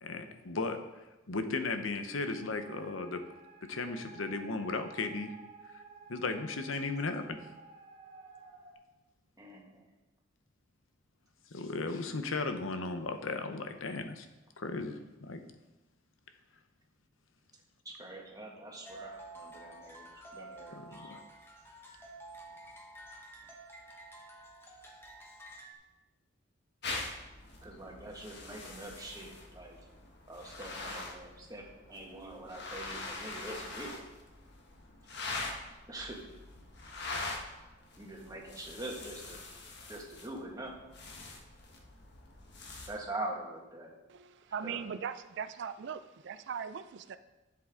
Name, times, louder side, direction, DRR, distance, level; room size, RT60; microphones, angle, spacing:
voice 1, 0.0-0.8 1.3-3.2 3.7-5.3 6.1-7.4 11.5-14.3 14.6-15.4 20.7-21.2, left 3 dB, 80° left, 8 dB, 0.8 m, -36 dB
sound 1, 2.2-8.7, right 4 dB, 35° right, 2.3 m, -53 dB
voice 2, 9.4-9.8 17.9-21.0 27.6-29.8 30.3-31.6 31.9-34.0 35.9-36.2 38.0-39.4 39.9-40.7 42.9-43.9 44.6-44.8, right 2 dB, 20° right, -1 dB, 1.7 m, -44 dB
sound 2, 18.8-25.7, right 1 dB, 10° left, 1.1 m, -50 dB
sound 3, 26.8-42.9, left 3 dB, 60° left, 1.3 m, -44 dB
voice 3, 44.1-47.2, right 7 dB, 60° right, 12 dB, 0.4 m, -40 dB
11.5 x 7.7 x 3.7 m, 1.1 s
head